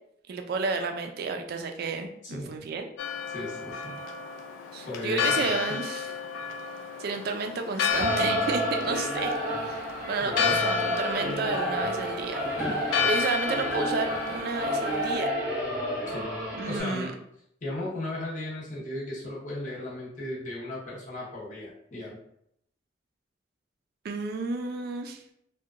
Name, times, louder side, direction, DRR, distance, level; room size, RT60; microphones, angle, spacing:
voice 1, 0.3-2.9 4.7-6.1 7.0-9.3 9.7-12.4 13.0-15.3 16.5-17.1 24.0-25.2, right 4 dB, 55° right, 5 dB, 0.3 m, -31 dB
voice 2, 2.2-2.5 3.3-4.0 4.9-5.8 10.2-10.6 12.6-12.8 16.1-16.3 16.7-17.1 17.6-22.2, left 1 dB, 40° left, -6 dB, 0.7 m, -36 dB
Church bell, 3.0-15.1, left 6 dB, 85° left, 0.3 m, -32 dB
Singing / Musical instrument, 7.9-16.8, equal, 10° right, 0.6 m, -30 dB
2.8 x 2.1 x 2.4 m, 0.74 s
head